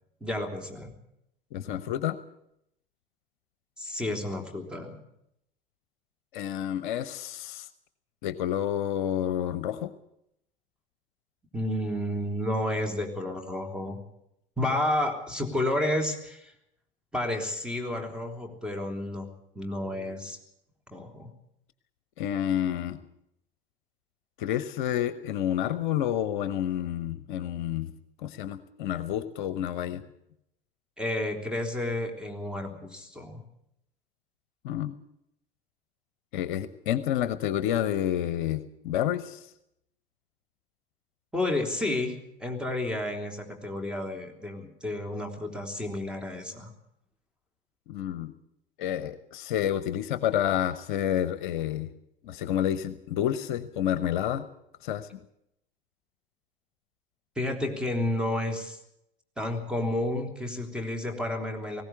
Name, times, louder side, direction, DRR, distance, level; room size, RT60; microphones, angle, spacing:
voice 1, 0.2-0.9 3.8-5.0 11.5-14.0 14.6-16.5 17.1-19.3 19.5-20.4 20.9-21.3 31.0-33.4 41.3-42.1 42.4-46.7 57.3-58.8 59.4-61.8, left 1 dB, 5° right, 3 dB, 3.3 m, -31 dB
voice 2, 1.5-2.2 6.3-7.7 8.2-9.9 22.2-23.0 24.4-27.9 28.2-30.0 34.6-34.9 36.3-39.5 47.9-48.3 48.8-51.9 52.2-54.4 54.8-55.1, left 11 dB, 55° left, 14 dB, 0.9 m, -29 dB
19.5 x 16.5 x 8.2 m, 0.79 s
figure-of-eight pair, 75°, 29 cm